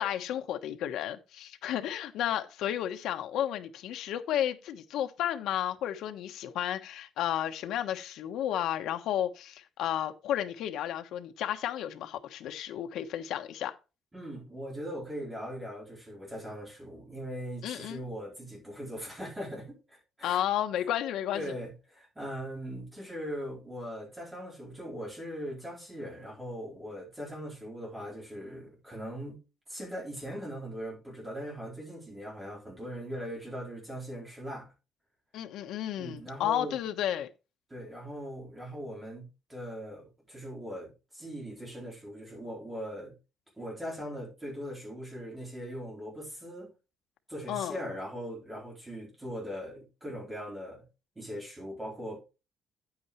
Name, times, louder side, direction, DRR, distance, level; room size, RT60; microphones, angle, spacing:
voice 1, 0.0-13.7 17.6-18.0 20.2-21.5 35.3-37.3 47.5-47.8, left 11 dB, 70° left, 1.1 m, -32 dB
voice 2, 14.1-20.4 21.3-29.4 29.7-34.7 36.0-36.8 37.7-43.1 43.6-46.7 47.3-50.8 51.2-52.2, equal, 10° right, 4.4 m, -40 dB
9.7 x 8.6 x 3.2 m
cardioid pair, 170°, 0 cm